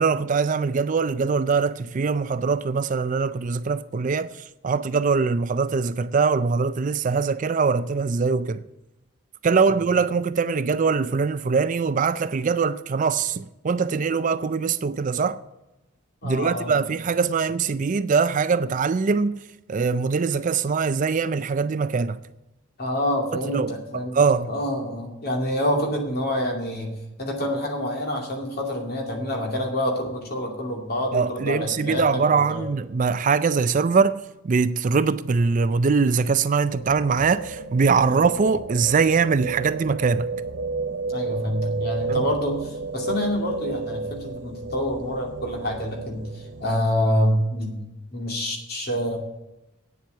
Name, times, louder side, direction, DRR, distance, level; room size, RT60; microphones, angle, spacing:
voice 1, 0.0-8.6 9.4-15.4 16.2-22.2 23.3-24.5 31.1-40.3 42.1-42.2, right 5 dB, 40° right, 0.4 m, -22 dB
voice 2, 16.2-16.7 22.8-24.2 24.5-26.9 27.2-32.1 32.3-32.7 38.1-38.3 41.1-47.8 48.1-49.2, equal, 50° left, 2.5 m, -27 dB
sound 1, 36.7-46.8, right 4 dB, 55° right, 0.8 m, -32 dB
9.2 x 7.4 x 8.1 m
head